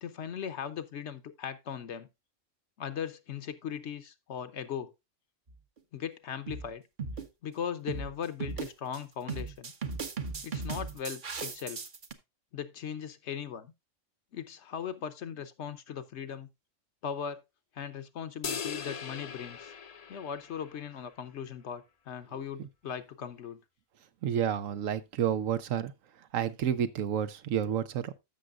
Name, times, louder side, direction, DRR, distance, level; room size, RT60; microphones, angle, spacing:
voice 1, 0.0-2.1 2.8-4.9 5.9-6.8 7.4-9.7 10.4-11.8 12.5-13.7 14.3-16.5 17.0-17.4 17.7-19.7 20.1-23.6, left 8 dB, 65° left, 1.1 m, -38 dB
sound 1, 5.5-5.8 6.5-6.7 7.0-7.3 7.9-8.1 8.4-9.0 9.3-12.1, right 4 dB, 45° right, 1.0 m, -37 dB
sound 2, 18.4-21.0, left 6 dB, 40° left, 0.6 m, -39 dB
voice 2, 24.2-25.9 26.3-28.1, right 9 dB, 85° right, 1.2 m, -30 dB
14.0 x 6.3 x 2.4 m
omnidirectional pair, 1.3 m